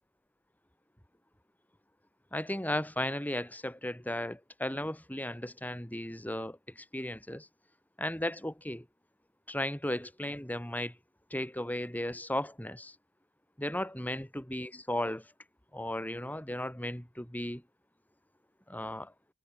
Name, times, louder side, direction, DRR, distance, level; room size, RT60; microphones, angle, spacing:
voice 1, 2.3-7.5 8.0-8.9 9.5-11.0 11.3-13.0 13.6-15.3 15.7-17.6 18.7-19.1, left 1 dB, 5° left, 3.6 m, -35 dB
head